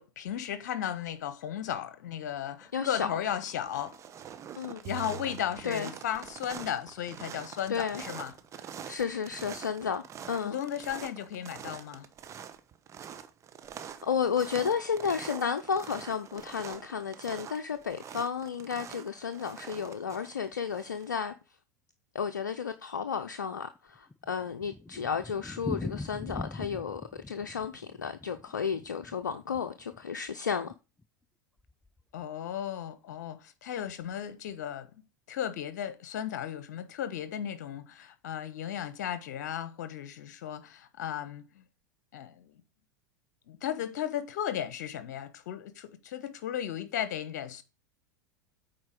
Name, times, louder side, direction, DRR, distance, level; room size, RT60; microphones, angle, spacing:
voice 1, 0.0-4.0 4.8-8.3 10.4-12.1 32.1-34.9 35.3-41.6 42.1-42.6 43.5-47.6, left 10 dB, 65° left, 1.2 m, -35 dB
sound 1, 2.6-3.0 3.3-21.1, right 8 dB, 30° right, 1.0 m, -45 dB
voice 2, 2.7-3.1 4.6-4.8 5.6-5.9 7.7-8.0 8.9-10.6 14.0-21.3 22.1-27.0 27.3-30.7, left 6 dB, 80° left, 0.6 m, -32 dB
sound 2, 4.9-6.7, right 9 dB, 50° right, 0.8 m, -45 dB
Thunder, 23.8-30.0 30.3-30.4 30.7-30.8 31.0-31.1 31.7-32.0, left 2 dB, 10° left, 0.3 m, -41 dB
8.6 x 4.5 x 5.0 m
figure-of-eight pair, 85°, 10 cm